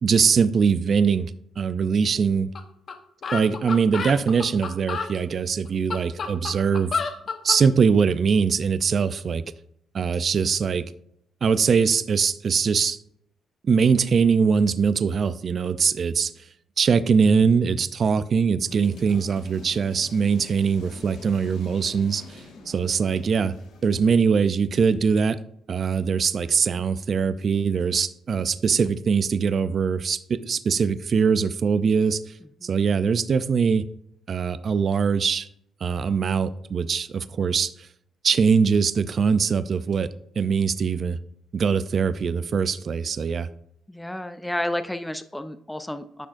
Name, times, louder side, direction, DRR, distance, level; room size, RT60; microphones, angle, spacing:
voice 1, 0.0-2.5 3.3-6.9 7.4-9.4 9.9-10.8 11.4-13.0 13.6-16.3 16.8-23.5 23.8-25.4 25.7-32.2 32.6-33.9 34.3-35.5 35.8-37.9 38.2-40.1 40.4-41.2 41.5-43.5, right 6 dB, 50° right, 14 dB, 0.4 m, -22 dB
sound 1, 2.6-2.7 2.9-3.0 3.2-5.1 5.7-7.6, left 5 dB, 50° left, 1.0 m, -30 dB
sound 2, 18.6-24.1, left 3 dB, 85° left, 1.6 m, -46 dB
voice 2, 43.9-46.3, left 1 dB, 5° left, 10 dB, 0.5 m, -31 dB
9.9 x 6.2 x 2.5 m, 0.70 s
cardioid pair, 90°, 0 cm